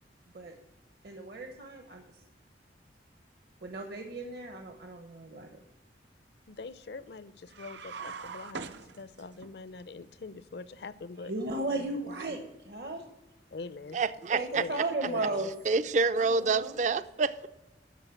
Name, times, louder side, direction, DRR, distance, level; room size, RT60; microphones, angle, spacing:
voice 1, 1.0-2.2 3.6-5.6 11.3-13.0 14.3-15.5 16.2-16.8, right 2 dB, 60° right, 0.9 m, -35 dB
voice 2, 6.5-11.3 11.6-12.4 13.5-14.0 14.5-14.8 15.1-15.5, left 3 dB, 65° left, 0.5 m, -43 dB
sound 1, 7.5-9.5, right 5 dB, 80° right, 0.7 m, -42 dB
voice 3, 13.9-14.6 15.7-17.5, right 4 dB, 40° right, 0.4 m, -27 dB
13.0 x 4.7 x 6.9 m
head